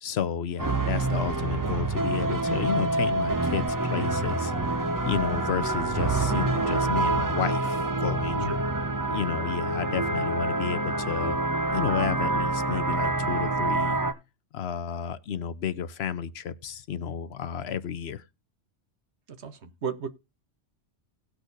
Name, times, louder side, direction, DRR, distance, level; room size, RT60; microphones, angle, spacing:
voice 1, 0.0-8.5 9.1-11.4 11.7-14.0 14.5-18.2, left 8 dB, 65° left, 0.9 m, -32 dB
sound 1, 0.6-14.1, right 2 dB, 20° right, 0.7 m, -27 dB
voice 2, 19.3-20.1, right 6 dB, 65° right, 1.3 m, -34 dB
18.5 x 6.3 x 2.6 m
omnidirectional pair, 1.2 m